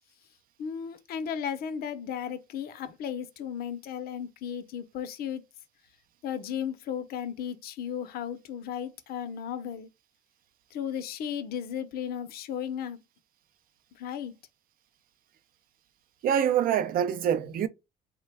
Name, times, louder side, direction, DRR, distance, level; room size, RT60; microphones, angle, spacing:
voice 1, 0.6-5.4 6.2-9.9 10.7-13.0 14.0-14.3, left 8 dB, 65° left, 0.6 m, -35 dB
voice 2, 16.2-17.7, right 9 dB, 60° right, 0.5 m, -25 dB
3.3 x 2.1 x 3.2 m
cardioid pair, 110°, 17 cm